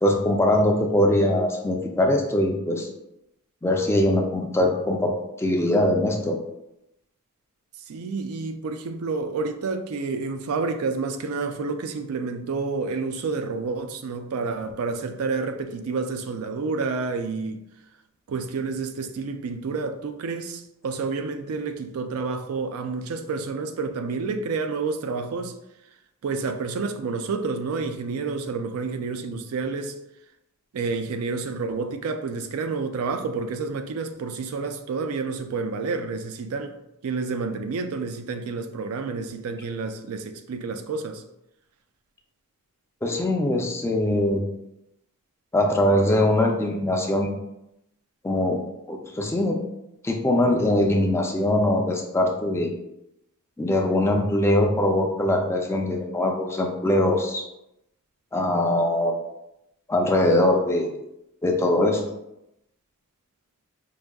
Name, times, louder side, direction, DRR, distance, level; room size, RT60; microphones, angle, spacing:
voice 1, 0.0-2.9 3.6-5.1 5.4-6.4 43.0-44.4 45.5-47.3 48.2-48.6 48.9-49.6 50.0-52.7 53.6-57.5 58.3-59.1 59.9-61.0 61.4-62.0, left 1 dB, 10° left, 0.4 m, -22 dB
voice 2, 7.9-17.6 18.3-25.6 26.2-30.0 30.7-36.8 37.0-41.2, right 4 dB, 70° right, 0.4 m, -29 dB
4.8 x 2.6 x 2.2 m
head